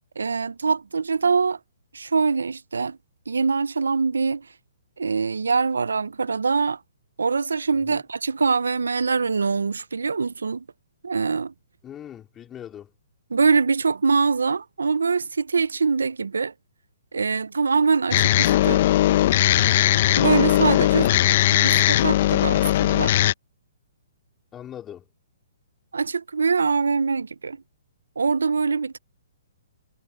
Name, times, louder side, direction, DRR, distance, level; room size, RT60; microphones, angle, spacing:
voice 1, 0.2-1.6 1.9-3.0 3.3-4.5 5.0-6.8 7.2-10.6 11.0-11.5 13.3-16.5 17.1-18.8 20.2-21.1 21.5-23.1 25.9-27.6 28.2-29.0, right 4 dB, 85° right, 0.6 m, -23 dB
voice 2, 11.8-12.9 21.0-21.4 24.5-25.0, left 10 dB, 20° left, 2.4 m, -41 dB
sound 1, 18.1-23.3, left 13 dB, 50° left, 0.8 m, -19 dB
hypercardioid pair, 140°, 0 cm